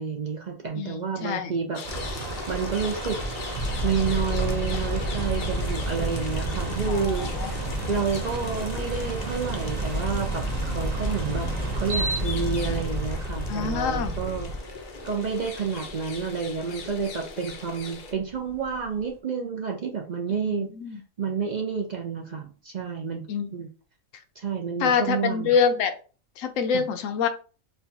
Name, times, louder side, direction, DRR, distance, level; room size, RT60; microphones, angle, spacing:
voice 1, 0.0-1.8 2.5-3.2 3.8-11.5 11.8-14.5 15.0-20.7 21.2-23.7 24.4-25.5 26.7-26.8, right 5 dB, 60° right, 1 dB, 0.4 m, -30 dB
voice 2, 0.8-1.5 6.8-7.5 13.5-14.1 20.4-21.0 23.3-23.5 24.8-26.0 26.4-27.3, left 6 dB, 75° left, 8 dB, 0.9 m, -26 dB
sound 1, 1.7-18.1, left 5 dB, 55° left, 0.6 m, -39 dB
sound 2, 1.8-19.0, right 2 dB, 35° right, 0.8 m, -36 dB
sound 3, 3.5-14.6, right 1 dB, 75° right, 1.2 m, -31 dB
4.3 x 2.2 x 2.7 m, 0.36 s
omnidirectional pair, 1.4 m